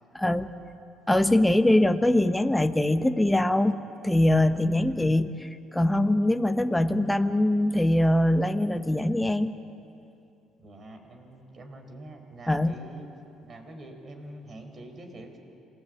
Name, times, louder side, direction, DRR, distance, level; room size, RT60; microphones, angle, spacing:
voice 1, 0.1-0.5 1.1-9.5 12.5-12.8, left 1 dB, 10° left, 9 dB, 1.2 m, -23 dB
voice 2, 10.6-13.1 13.4-15.4, right 1 dB, 45° right, 5 dB, 4.4 m, -45 dB
27.0 x 17.0 x 8.4 m, 2.7 s
hypercardioid pair, 55°, 0 cm